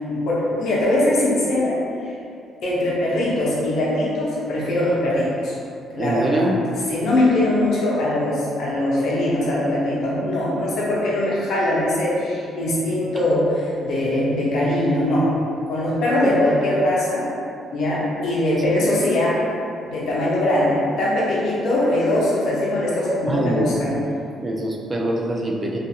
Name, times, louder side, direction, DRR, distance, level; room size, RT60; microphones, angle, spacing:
voice 1, 0.0-2.1 2.6-5.5 5.9-6.4 6.9-15.3 15.7-17.3 17.7-19.4 19.8-23.9, left 1 dB, 70° left, -7 dB, 0.7 m, -21 dB
voice 2, 6.0-6.6 23.3-24.0 24.4-25.8, right 1 dB, 25° right, -1 dB, 0.3 m, -24 dB
2.4 x 2.3 x 2.7 m, 2.6 s
cardioid pair, 125°, 0 cm